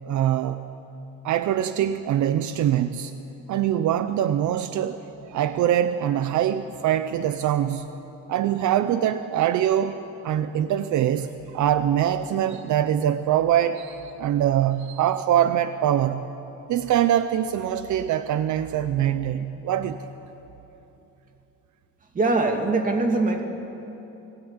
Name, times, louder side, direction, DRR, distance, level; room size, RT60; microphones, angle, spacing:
voice 1, 0.1-0.6 1.2-3.1 3.5-7.9 8.3-11.3 11.5-16.2 16.7-20.0, right 10 dB, 70° right, 11 dB, 0.9 m, -23 dB
voice 2, 22.1-23.4, right 3 dB, 25° right, 4 dB, 2.7 m, -22 dB
29.5 x 20.5 x 9.8 m, 3.0 s
cardioid pair, 175°, 31 cm